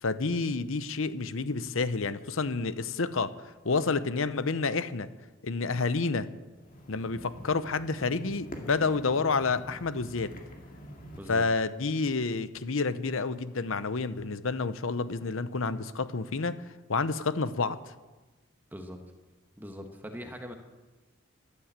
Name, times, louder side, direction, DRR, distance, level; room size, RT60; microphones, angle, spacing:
voice 1, 0.0-3.3 3.6-5.1 5.4-6.3 6.9-10.3 11.3-16.6 16.9-17.8, left 4 dB, 70° left, 14 dB, 0.8 m, -29 dB
sound 1, 6.5-11.2, equal, 40° left, 2.1 m, -46 dB
voice 2, 19.6-20.5, equal, 10° right, 4 dB, 1.3 m, -41 dB
14.5 x 12.0 x 7.5 m, 1.2 s
head